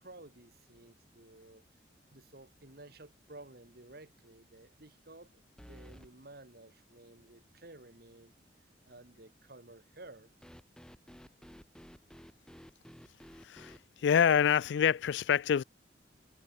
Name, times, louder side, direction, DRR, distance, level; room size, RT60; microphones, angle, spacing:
voice 1, 0.0-1.6 2.1-8.3 8.9-10.3, right 2 dB, 55° right, 2.0 m, -54 dB
sound 1, 2.5-2.9 3.3-3.4 5.6-6.1 10.4-13.8, equal, 5° left, 1.3 m, -53 dB
voice 2, 13.4-15.6, left 8 dB, 75° left, 0.3 m, -27 dB
head